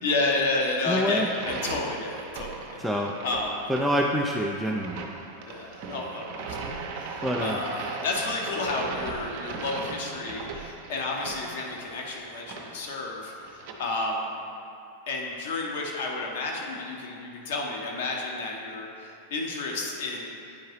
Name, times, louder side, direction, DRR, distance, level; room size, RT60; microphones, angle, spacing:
voice 1, 0.0-2.9 3.2-3.6 5.4-6.7 7.0-14.4 15.1-20.4, left 3 dB, 55° left, 0 dB, 1.0 m, -31 dB
voice 2, 0.8-1.3 2.8-3.2 3.7-5.1 7.2-7.6, equal, ahead, -2 dB, 0.4 m, -26 dB
sound 1, 1.2-13.7, right 4 dB, 45° right, 0.7 m, -38 dB
8.9 x 4.6 x 3.1 m, 2.6 s
figure-of-eight pair, 90°, 0 cm